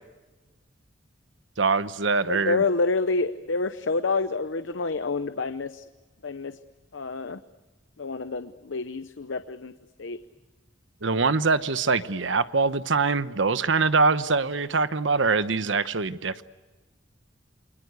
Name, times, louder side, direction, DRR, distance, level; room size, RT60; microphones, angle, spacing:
voice 1, 1.6-2.6 11.0-16.4, right 4 dB, 80° right, 13 dB, 1.0 m, -23 dB
voice 2, 2.3-5.8 6.2-6.6 6.9-7.4 8.0-9.7 10.0-10.2, left 3 dB, 80° left, 11 dB, 0.8 m, -28 dB
28.5 x 23.5 x 8.1 m, 1.2 s
head